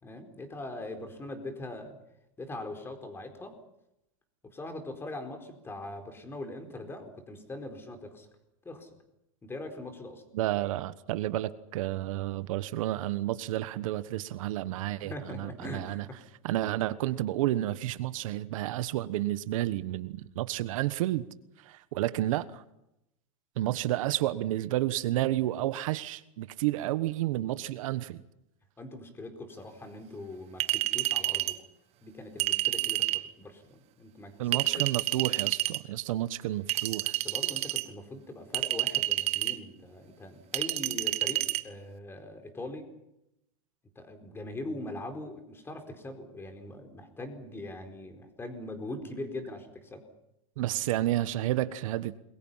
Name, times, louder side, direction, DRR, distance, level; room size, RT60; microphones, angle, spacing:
voice 1, 0.0-2.0 2.4-3.5 4.5-8.3 8.6-8.9 9.4-10.2 15.0-16.2 28.8-31.5 32.0-34.9 37.1-42.8 44.0-50.0, left 2 dB, 15° left, 6 dB, 4.4 m, -41 dB
voice 2, 10.3-16.1 16.4-21.3 21.6-22.6 23.6-28.2 34.4-37.1 50.6-52.1, right 14 dB, 70° right, 14 dB, 1.3 m, -31 dB
Chink clink, 30.6-31.6 32.4-33.3 34.5-35.8 36.7-37.9 38.5-39.6 40.5-41.6, right 16 dB, 35° right, 1.2 m, -29 dB
29.0 x 22.5 x 5.7 m, 0.85 s
supercardioid pair, 145°, 18 cm